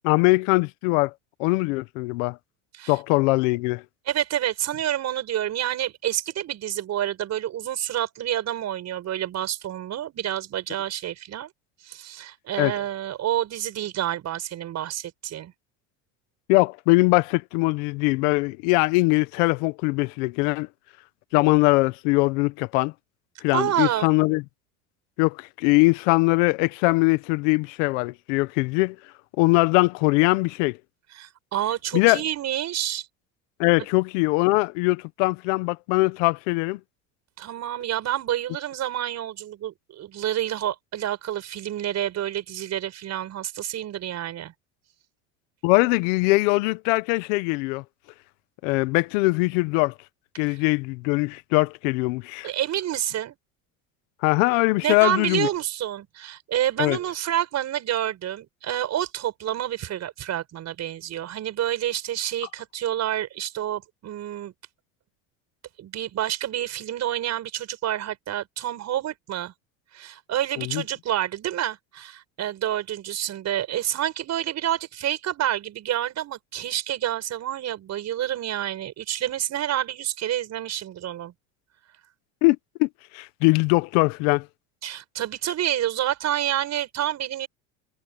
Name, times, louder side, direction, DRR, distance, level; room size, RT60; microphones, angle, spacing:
voice 1, 0.0-1.1 1.4-2.4 2.9-3.8 12.6-12.7 16.5-20.7 21.3-22.9 23.4-24.4 25.2-29.0 29.4-30.8 31.9-32.2 33.6-36.8 45.6-47.8 48.6-49.9 50.4-52.5 54.2-55.5 56.8-57.0 70.6-70.8 82.4-82.9 83.1-84.4, left 24 dB, 75° left, 1.5 m, -21 dB
voice 2, 4.1-11.5 11.8-15.5 23.5-24.1 31.1-33.1 37.4-44.5 50.4-50.6 52.4-53.3 54.8-64.5 65.8-69.5 69.9-81.3 84.8-87.5, right 11 dB, 45° right, 6.6 m, -28 dB
supercardioid pair, 110°, 38 cm